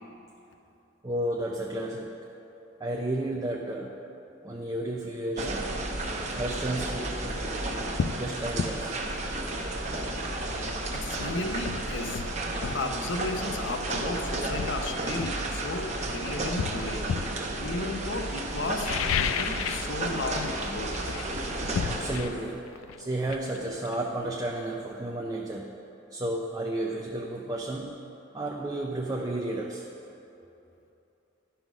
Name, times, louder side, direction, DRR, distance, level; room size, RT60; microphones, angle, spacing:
voice 1, 1.0-2.2 2.8-4.0 4.4-5.7 6.3-7.5 8.2-10.4 19.3-19.4 21.8-22.7 23.0-25.8 26.1-28.1 28.3-29.9, right 1 dB, 20° right, 0 dB, 0.5 m, -33 dB
sound 1, 5.4-22.2, right 2 dB, 35° right, 0.9 m, -32 dB
sound 2, 7.2-7.4 8.0-8.2 8.6-8.8 10.7-10.8 11.2-12.9 13.9-14.1 14.6-16.0 16.6-17.4 18.7-20.0 20.2-20.6 20.9-24.5 24.8-24.9, left 7 dB, 85° left, 0.3 m, -33 dB
voice 2, 10.9-12.2 12.6-17.0 17.6-21.0, left 2 dB, 60° left, 5 dB, 0.7 m, -34 dB
11.5 x 5.7 x 6.1 m, 3.0 s
head